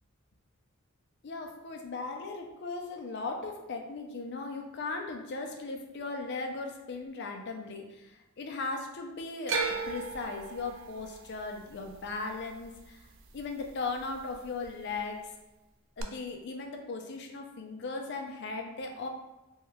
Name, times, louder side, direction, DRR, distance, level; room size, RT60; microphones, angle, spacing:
voice 1, 1.2-13.1 13.3-15.2 16.0-19.1, left 3 dB, 50° left, 3 dB, 0.4 m, -38 dB
sound 1, 9.5-13.7 14.0-14.7 16.0-16.1, right 4 dB, 60° right, 0.3 m, -36 dB
2.7 x 2.3 x 3.3 m, 1.1 s
head